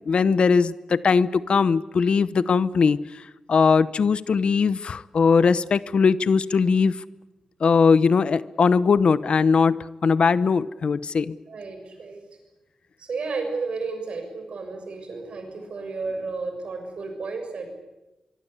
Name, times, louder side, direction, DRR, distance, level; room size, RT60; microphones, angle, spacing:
voice 1, 0.1-3.2 3.5-7.0 7.6-11.4, left 5 dB, 60° left, 16 dB, 0.8 m, -20 dB
voice 2, 11.5-12.2 13.0-17.7, right 4 dB, 65° right, 6 dB, 6.7 m, -32 dB
25.5 x 23.5 x 8.2 m, 1.0 s
wide cardioid pair, 145°, 2 cm